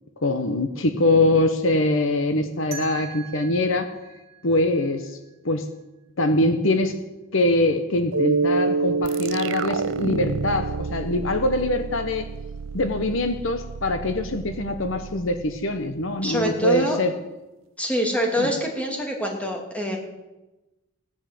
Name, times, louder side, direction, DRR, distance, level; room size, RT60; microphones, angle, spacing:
voice 1, 0.2-3.9 4.4-5.1 5.4-5.7 6.2-6.9 7.3-12.3 12.7-17.1 18.4-18.5, left 1 dB, 65° left, 8 dB, 1.1 m, -23 dB
sound 1, 2.7-5.6, right 8 dB, 30° right, 2.7 m, -42 dB
Mallet percussion, 8.1-12.6, right 4 dB, 85° right, 0.9 m, -27 dB
sound 2, 9.0-16.3, right 5 dB, 60° right, 0.6 m, -34 dB
voice 2, 16.2-17.0 17.8-20.0, equal, 5° left, 1 dB, 2.7 m, -25 dB
17.5 x 10.5 x 7.7 m, 1.0 s
head